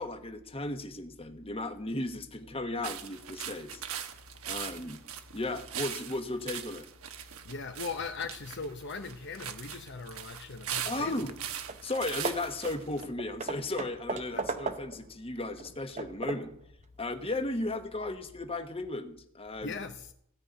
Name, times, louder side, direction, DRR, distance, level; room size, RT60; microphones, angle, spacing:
voice 1, 0.0-3.8 4.5-5.0 5.3-6.9 10.8-11.3 11.8-16.5 17.0-19.8, left 2 dB, 25° left, 1.1 m, -35 dB
sound 1, 2.8-13.0, right 9 dB, 75° right, 1.1 m, -41 dB
voice 2, 7.4-11.3 14.3-14.6 19.6-20.1, left 4 dB, 50° left, 0.8 m, -39 dB
Hammer / Wood, 11.3-11.4 11.7-11.9 12.2-15.1 15.6-16.6, right 4 dB, 30° right, 0.7 m, -37 dB
16.5 x 5.6 x 9.1 m
head